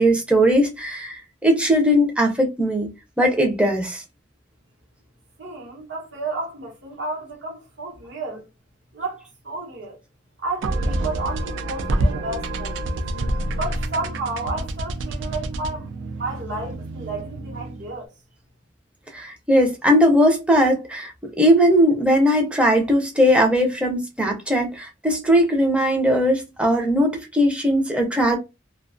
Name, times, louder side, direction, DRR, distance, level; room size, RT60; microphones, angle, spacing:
voice 1, 0.0-4.0 19.1-21.1 21.4-28.4, equal, 5° right, 0.5 m, -19 dB
voice 2, 5.4-8.5 8.9-10.0 10.4-13.0 13.6-15.9 16.2-18.1, right 3 dB, 65° right, 1.0 m, -32 dB
sound 1, 10.6-17.9, right 1 dB, 90° right, 0.4 m, -27 dB
2.4 x 2.2 x 2.5 m
head